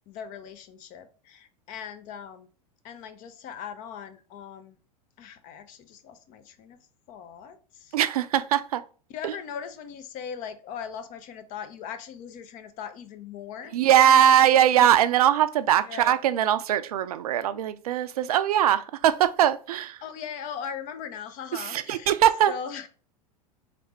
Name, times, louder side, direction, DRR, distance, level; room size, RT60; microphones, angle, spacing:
voice 1, 0.1-2.5 2.8-4.8 5.2-6.8 7.1-7.9 9.1-13.7 14.1-14.2 15.8-16.2 20.0-22.2 22.5-22.9, left 7 dB, 40° left, 0.7 m, -39 dB
voice 2, 7.9-8.8 9.2-9.3 13.7-20.0 21.5-22.5, right 10 dB, 70° right, 0.4 m, -21 dB
4.1 x 3.3 x 3.0 m
figure-of-eight pair, 90°, 20 cm